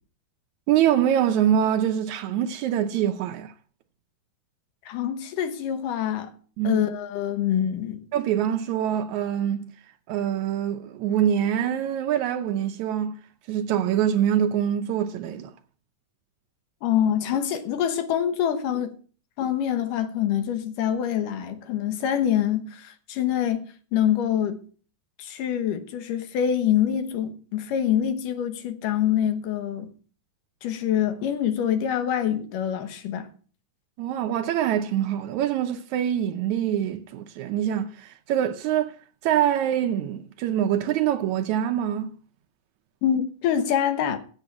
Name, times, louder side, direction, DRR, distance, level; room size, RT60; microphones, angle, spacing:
voice 1, 0.7-3.5 6.6-6.8 8.1-9.7 10.1-13.2 13.5-15.5 34.0-39.0 39.2-42.1, right 10 dB, 75° right, 1.8 m, -24 dB
voice 2, 4.9-6.3 6.6-8.1 16.8-18.9 19.4-23.6 23.9-24.6 25.2-29.9 30.6-33.3 43.0-44.2, left 9 dB, 80° left, 2.7 m, -25 dB
7.9 x 7.7 x 8.3 m
omnidirectional pair, 3.7 m